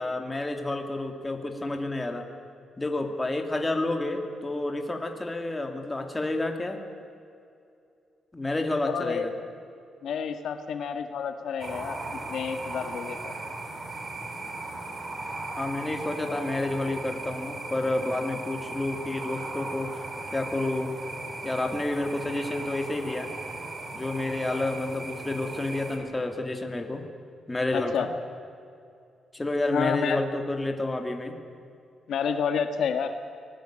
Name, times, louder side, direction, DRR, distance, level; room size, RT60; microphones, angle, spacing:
voice 1, 0.0-2.3 2.8-6.8 8.3-9.3 15.6-20.0 20.3-20.9 21.4-23.3 23.9-27.0 27.5-28.1 29.3-31.4, left 2 dB, 15° left, 5 dB, 2.7 m, -30 dB
voice 2, 8.8-9.3 10.0-13.3 16.2-16.4 27.7-28.1 29.7-30.2 32.1-33.1, left 7 dB, 70° left, 8 dB, 1.7 m, -29 dB
sound 1, 11.6-26.0, right 2 dB, 30° right, 4.1 m, -37 dB
25.0 x 19.5 x 8.9 m, 2.5 s
cardioid pair, 130°, 0 cm